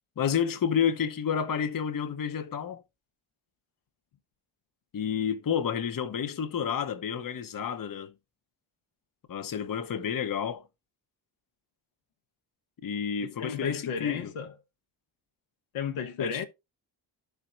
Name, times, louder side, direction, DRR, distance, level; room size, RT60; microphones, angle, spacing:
voice 1, 0.2-2.8 4.9-8.1 9.3-10.7 12.8-14.3 16.2-16.4, left 7 dB, 40° left, 0.9 m, -30 dB
voice 2, 13.2-14.5 15.7-16.5, left 6 dB, 80° left, 1.1 m, -33 dB
12.0 x 4.6 x 2.5 m
supercardioid pair, 45°, 49 cm